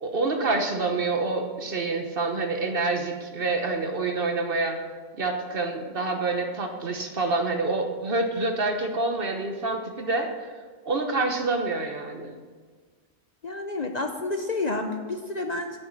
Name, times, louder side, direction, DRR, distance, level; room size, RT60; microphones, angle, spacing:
voice 1, 0.0-4.8 5.2-10.3 10.8-12.4, right 3 dB, 50° right, 4 dB, 1.2 m, -27 dB
voice 2, 13.4-15.8, left 2 dB, 40° left, 4 dB, 0.7 m, -30 dB
10.0 x 6.4 x 8.0 m, 1.5 s
omnidirectional pair, 1.3 m